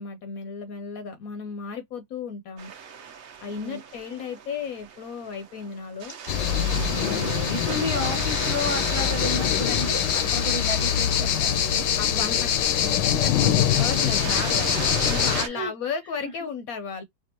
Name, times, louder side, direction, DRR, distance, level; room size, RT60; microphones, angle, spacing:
voice 1, 0.0-2.7 3.4-6.2 12.0-17.0, left 5 dB, 65° left, 1.0 m, -34 dB
sound 1, 2.6-15.5, right 7 dB, 60° right, 1.1 m, -36 dB
voice 2, 3.5-3.8 7.0-11.9 13.7-13.8 15.3-15.7 16.2-16.3, left 1 dB, 25° right, 0.9 m, -33 dB
sound 2, 6.3-15.4, left 9 dB, 85° left, 1.2 m, -24 dB
4.5 x 2.3 x 2.8 m
omnidirectional pair, 1.8 m